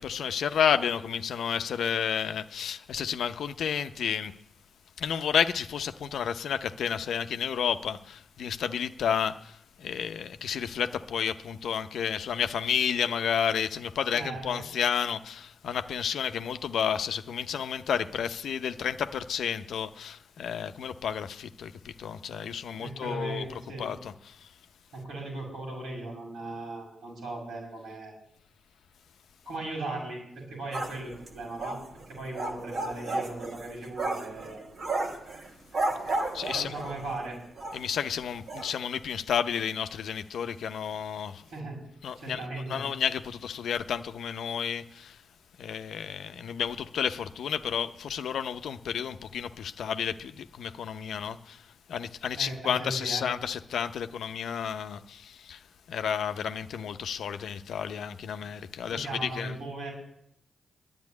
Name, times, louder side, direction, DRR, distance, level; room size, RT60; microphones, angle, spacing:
voice 1, 0.0-4.3 5.0-23.5 23.8-24.5 36.3-36.7 37.7-41.4 42.0-42.4 42.7-45.2 45.6-51.6 51.9-55.6 55.9-59.6, left 8 dB, 80° left, 0.6 m, -31 dB
voice 2, 14.1-14.7 22.8-23.9 24.9-28.1 29.5-31.8 32.1-34.6 36.5-37.4 41.5-41.8 42.2-42.8 52.4-53.2 58.8-59.9, right 2 dB, 90° right, 7.2 m, -38 dB
sound 1, 30.7-37.2 37.6-37.8 38.1-38.2 38.5-38.7, right 2 dB, 65° right, 2.7 m, -33 dB
10.5 x 8.9 x 9.6 m
supercardioid pair, 55°, 0 cm